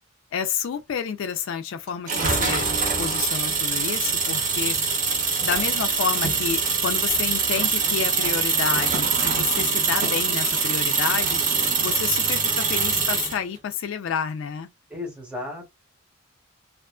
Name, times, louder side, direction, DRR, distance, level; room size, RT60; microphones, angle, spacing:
voice 1, 0.3-2.7 3.0-4.8 5.4-11.4 11.8-14.7, left 7 dB, 60° left, 0.3 m, -29 dB
sound 1, 2.1-13.4, right 5 dB, 40° right, 0.8 m, -23 dB
voice 2, 14.9-15.7, left 2 dB, 5° right, 0.8 m, -34 dB
2.4 x 2.4 x 2.2 m
head